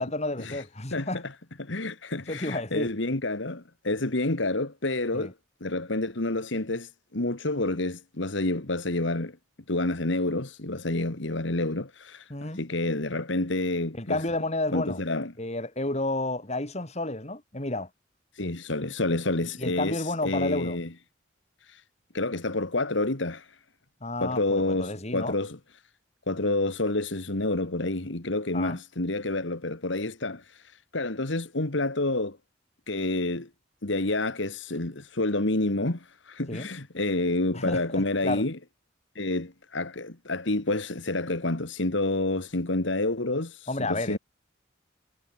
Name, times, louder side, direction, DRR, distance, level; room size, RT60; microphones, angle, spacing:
voice 1, 0.0-1.2 2.3-2.9 5.1-5.3 12.3-12.6 13.9-15.0 15.4-17.9 19.6-20.8 24.0-25.4 28.5-28.8 36.5-36.7 37.5-38.4 43.7-44.2, left 2 dB, 35° left, 3.1 m, -31 dB
voice 2, 0.9-1.3 1.6-5.3 5.6-9.4 9.7-14.2 14.7-15.3 18.4-20.9 21.7-21.8 22.1-23.5 24.2-25.6 26.3-30.6 30.9-32.4 32.9-33.5 33.8-38.6 39.2-44.2, left 2 dB, 65° left, 1.9 m, -29 dB
head